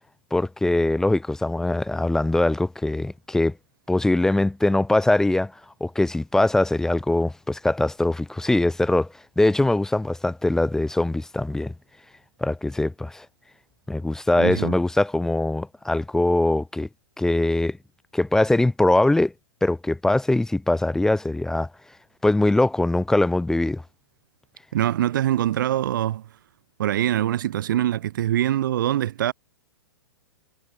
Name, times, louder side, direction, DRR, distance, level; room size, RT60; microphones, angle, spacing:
voice 1, 0.3-3.6 3.9-11.7 12.4-13.3 13.9-16.9 17.2-17.8 18.1-19.3 19.6-21.7 22.2-23.8, left 2 dB, 5° left, 0.8 m, -22 dB
voice 2, 14.4-14.7 24.7-26.2 26.8-29.3, right 12 dB, 50° right, 0.6 m, -23 dB
figure-of-eight pair, 110°, 14 cm